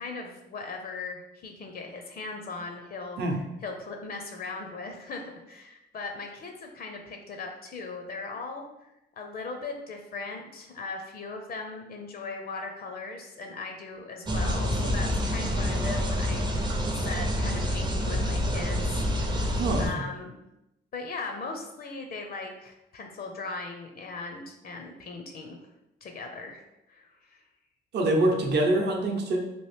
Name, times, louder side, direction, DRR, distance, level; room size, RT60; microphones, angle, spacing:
voice 1, 0.0-3.2 3.6-20.4 20.9-25.6 26.0-27.4, left 3 dB, 50° left, 4 dB, 0.5 m, -39 dB
sound 1, 14.3-19.9, equal, 20° right, 0.5 m, -27 dB
voice 2, 19.6-19.9 27.9-29.4, right 1 dB, 60° right, 2 dB, 0.7 m, -24 dB
3.0 x 2.5 x 3.2 m, 0.91 s
cardioid pair, 90°, 20 cm